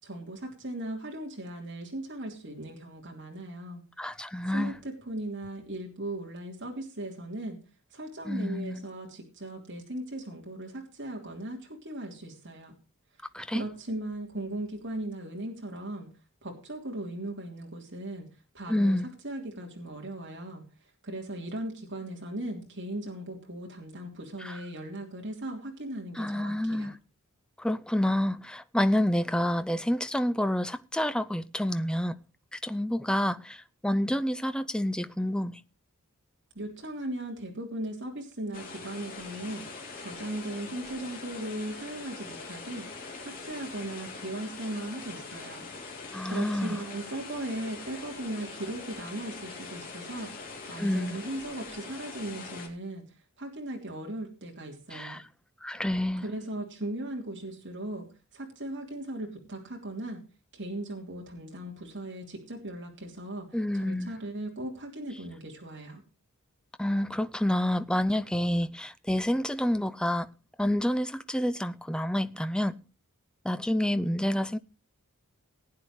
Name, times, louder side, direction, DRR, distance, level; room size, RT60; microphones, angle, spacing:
voice 1, 0.0-3.8 4.5-7.6 7.9-12.7 13.5-16.1 16.4-18.3 18.5-19.0 19.2-20.6 21.0-26.9 36.5-39.6 40.0-42.9 43.2-45.7 46.3-50.3 50.7-53.0 53.4-55.2 56.2-60.2 60.5-66.0, right 1 dB, 55° right, 3.2 m, -38 dB
voice 2, 4.0-4.8 8.3-8.8 13.3-13.6 18.7-19.1 24.4-24.6 26.2-27.0 27.6-32.2 32.5-35.6 46.1-46.8 50.8-51.2 54.9-55.2 55.6-56.2 63.5-64.2 66.8-70.3 70.6-72.8 73.4-74.6, left 1 dB, 5° left, 0.5 m, -28 dB
sound 1, 38.5-52.7, left 4 dB, 40° left, 3.3 m, -43 dB
19.0 x 9.4 x 3.2 m
head